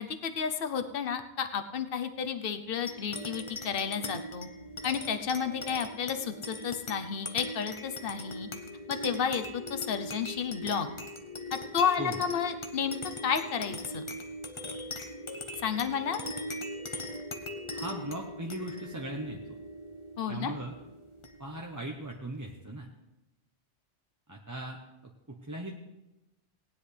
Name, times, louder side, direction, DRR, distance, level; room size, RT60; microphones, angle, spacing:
voice 1, 0.0-4.5 4.8-8.5 8.9-10.9 11.7-13.0 13.2-14.0 15.6-16.2 20.2-20.5, left 7 dB, 55° left, 8 dB, 1.0 m, -31 dB
sound 1, 2.9-21.7, left 1 dB, 30° left, 0.9 m, -40 dB
voice 2, 17.7-19.6 20.3-20.7 21.4-22.9 24.3-25.7, right 1 dB, 15° right, 0 dB, 0.9 m, -39 dB
18.5 x 10.0 x 3.4 m, 0.95 s
omnidirectional pair, 1.2 m